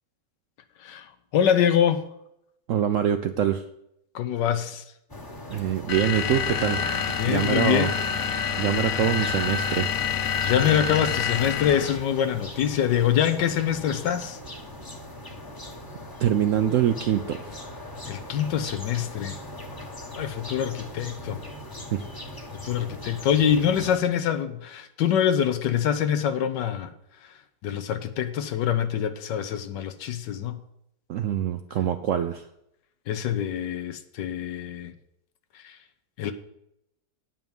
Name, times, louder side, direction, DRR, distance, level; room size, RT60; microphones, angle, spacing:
voice 1, 0.8-2.0 4.1-4.8 7.2-7.9 10.4-14.4 18.1-19.4 20.1-21.4 22.6-26.9 27.2-27.3 27.6-30.6 33.1-34.9 35.5-35.8 36.2-36.3, left 9 dB, 80° left, 1.4 m, -25 dB
voice 2, 2.7-3.6 5.5-6.8 7.3-7.9 8.6-9.9 16.2-17.5 21.9-22.1 31.1-32.5, right 10 dB, 75° right, 0.7 m, -24 dB
sound 1, 5.1-24.0, left 1 dB, 15° left, 0.9 m, -40 dB
sound 2, 5.9-12.1, left 7 dB, 60° left, 1.1 m, -27 dB
9.3 x 5.8 x 7.0 m
omnidirectional pair, 1.9 m